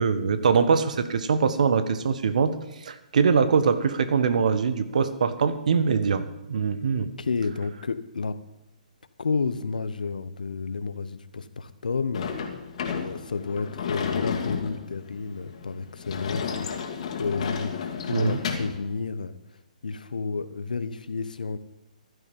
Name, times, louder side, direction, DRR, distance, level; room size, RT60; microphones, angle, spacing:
voice 1, 0.0-2.6 2.8-7.1 18.1-18.4, right 5 dB, 60° right, 11 dB, 1.5 m, -23 dB
voice 2, 7.0-8.4 9.2-12.5 12.9-19.4 19.8-21.6, left 4 dB, 75° left, 12 dB, 1.1 m, -31 dB
Sliding door / Slam, 12.1-18.8, left 6 dB, 50° left, 2.4 m, -32 dB
15.0 x 12.0 x 5.5 m, 0.94 s
figure-of-eight pair, 130°, 4 cm